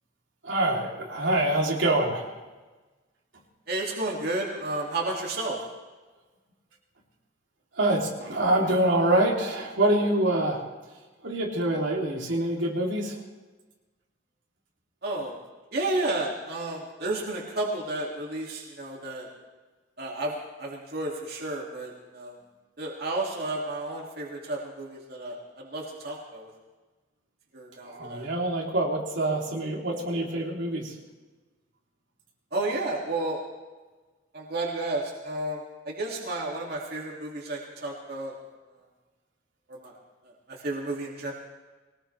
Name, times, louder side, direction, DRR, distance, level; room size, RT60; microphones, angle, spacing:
voice 1, 0.4-2.3 7.7-10.6 11.2-13.2 27.8-30.9, right 1 dB, 90° right, -3 dB, 3.2 m, -25 dB
voice 2, 3.7-5.6 15.0-15.4 15.7-19.3 20.0-22.4 22.8-26.5 27.5-28.3 32.5-33.4 34.3-38.3 39.7-39.9 40.2-41.3, right 2 dB, 60° right, -3 dB, 2.5 m, -32 dB
22.0 x 19.0 x 3.4 m, 1.3 s
head